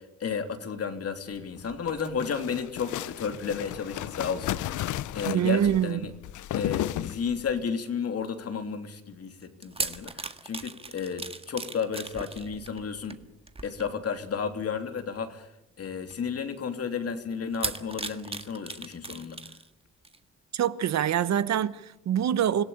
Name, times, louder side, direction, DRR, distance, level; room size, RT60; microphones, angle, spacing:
voice 1, 0.0-4.8 5.1-6.1 6.5-13.2 13.6-15.5 15.8-19.4, left 6 dB, 50° left, 3.2 m, -32 dB
sound 1, 1.6-7.6, left 13 dB, 75° left, 0.8 m, -34 dB
voice 2, 5.2-6.1 20.5-22.6, right 10 dB, 60° right, 1.2 m, -25 dB
sound 2, 9.4-14.3 15.0-15.2 16.1-16.2 17.5-19.7 20.0-20.2, right 3 dB, 20° right, 1.8 m, -37 dB
26.5 x 17.0 x 8.8 m
cardioid pair, 90°, 30 cm